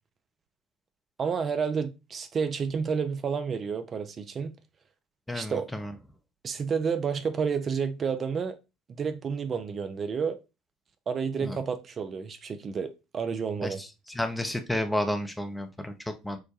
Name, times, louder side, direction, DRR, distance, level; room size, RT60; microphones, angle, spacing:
voice 1, 1.2-4.5 5.3-5.7 6.4-8.6 8.9-10.4 11.1-13.8, right 6 dB, 35° right, 0.4 m, -30 dB
voice 2, 5.3-5.9 11.4-11.6 13.6-13.9 14.1-16.4, left 1 dB, 5° left, 0.6 m, -31 dB
4.6 x 2.1 x 2.6 m
figure-of-eight pair, 60°, 0 cm